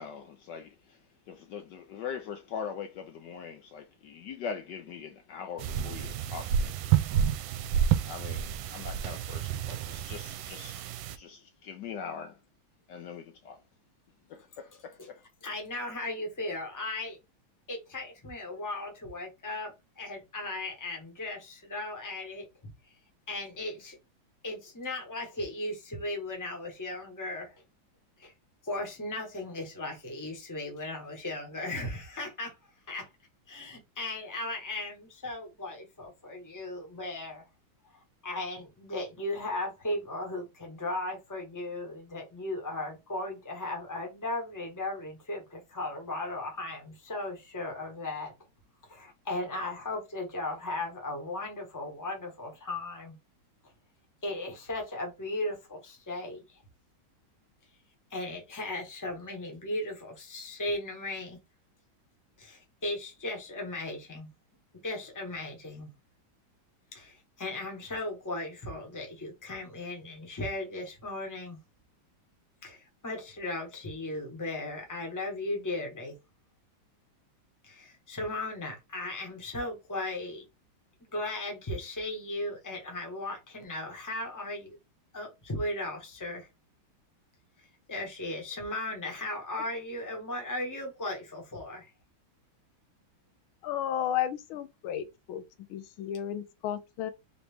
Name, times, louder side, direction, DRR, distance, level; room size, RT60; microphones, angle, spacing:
voice 1, 0.0-6.9 8.0-12.4 12.9-13.6 14.3-15.2, left 7 dB, 70° left, 1.1 m, -42 dB
sound 1, 5.6-11.2, right 9 dB, 80° right, 1.3 m, -30 dB
voice 2, 15.4-17.2 17.7-22.5 23.3-24.0 24.4-27.5 28.2-28.3 28.6-32.5 32.9-33.1 33.5-37.4 38.2-48.3 48.9-53.2 54.2-56.6 58.1-61.4 62.4-64.3 64.8-65.9 66.9-71.6 72.6-76.2 77.6-80.4 81.1-84.7 85.1-86.5 87.9-91.9, left 2 dB, 10° left, 1.0 m, -36 dB
voice 3, 93.6-95.4 95.7-97.1, left 10 dB, 85° left, 1.5 m, -33 dB
3.9 x 3.0 x 3.4 m
omnidirectional pair, 2.2 m